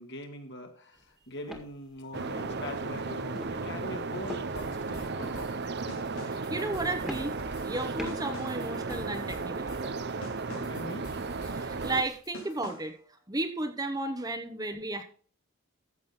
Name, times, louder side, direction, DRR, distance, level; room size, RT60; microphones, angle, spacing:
voice 1, 0.0-5.6 10.5-11.1, left 1 dB, 50° left, 4 dB, 2.2 m, -42 dB
sound 1, 1.0-1.1 1.5-1.7 2.4-2.6 3.4-3.6 4.2-4.8 5.2-5.5 6.1-6.4 7.0-7.7 8.0-8.3 8.9-9.2 9.8-10.0, equal, ahead, 1.8 m, -42 dB
sound 2, 2.1-12.0, right 4 dB, 50° right, 0.7 m, -35 dB
sound 3, 4.5-13.0, left 1 dB, 75° left, 3.0 m, -47 dB
voice 2, 6.2-7.3 7.6-9.7 11.5-12.9 13.3-15.0, right 2 dB, 15° right, 6 dB, 1.0 m, -33 dB
14.0 x 7.6 x 3.8 m, 0.44 s
head